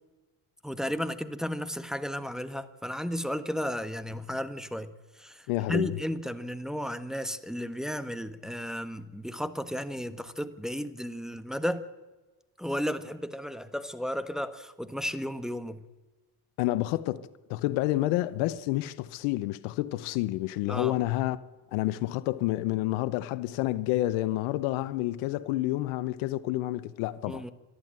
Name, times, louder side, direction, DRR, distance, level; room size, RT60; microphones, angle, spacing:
voice 1, 0.6-11.8 12.6-15.8 20.7-20.9 27.3-27.5, equal, ahead, 1.3 m, -34 dB
voice 2, 5.5-6.0 16.6-21.4 21.7-27.4, left 16 dB, 85° left, 0.9 m, -29 dB
26.5 x 11.5 x 8.9 m
supercardioid pair, 75°, 47 cm